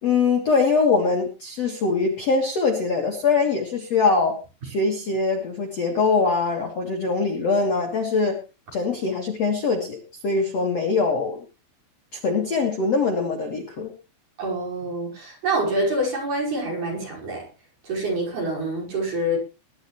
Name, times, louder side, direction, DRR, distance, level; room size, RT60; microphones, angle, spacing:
voice 1, 0.0-4.4 4.6-8.4 8.7-11.4 12.1-13.9, left 4 dB, 50° left, 1 dB, 2.2 m, -22 dB
voice 2, 14.4-17.4 17.8-19.4, right 1 dB, 45° right, -2 dB, 6.7 m, -26 dB
20.5 x 11.5 x 3.2 m, 0.32 s
omnidirectional pair, 5.4 m